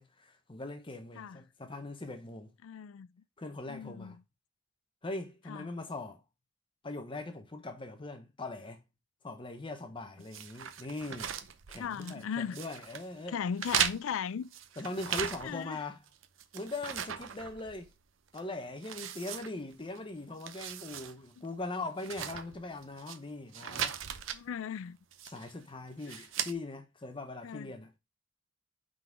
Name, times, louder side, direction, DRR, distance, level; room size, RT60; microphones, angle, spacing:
voice 1, 0.0-2.5 3.4-4.2 5.0-6.2 6.8-8.8 9.2-11.3 11.7-13.4 14.8-16.0 16.5-17.9 18.3-24.0 25.2-28.0, left 2 dB, 25° left, 0.8 m, -41 dB
voice 2, 2.6-3.2 3.7-4.2 5.5-5.7 11.8-12.6 13.3-14.5 15.4-15.8 24.3-25.0 26.1-26.3 27.4-27.7, left 7 dB, 80° left, 0.4 m, -37 dB
sound 1, 10.3-12.2 12.5-13.1 13.6-15.7 16.1-18.0 18.3-18.4 18.8-20.0 20.3-21.1 21.4-21.5 22.0-23.2 23.5-24.4 25.1-25.5 26.0-26.5, right 9 dB, 75° right, 0.7 m, -37 dB
5.7 x 3.9 x 4.6 m
head